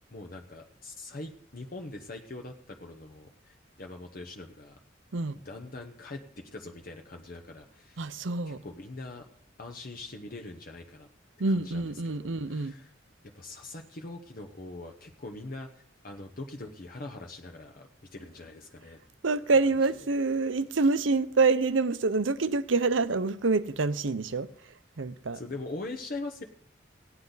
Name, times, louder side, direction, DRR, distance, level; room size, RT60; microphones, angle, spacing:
voice 1, 0.1-4.8 5.3-8.1 8.5-9.3 9.6-11.1 11.5-12.9 13.3-19.0 25.3-26.4, left 2 dB, 50° left, 1.0 m, -42 dB
voice 2, 8.0-8.6 11.4-12.7 19.2-24.5 25.0-25.4, right 3 dB, 85° right, 0.7 m, -26 dB
17.5 x 9.7 x 4.0 m
head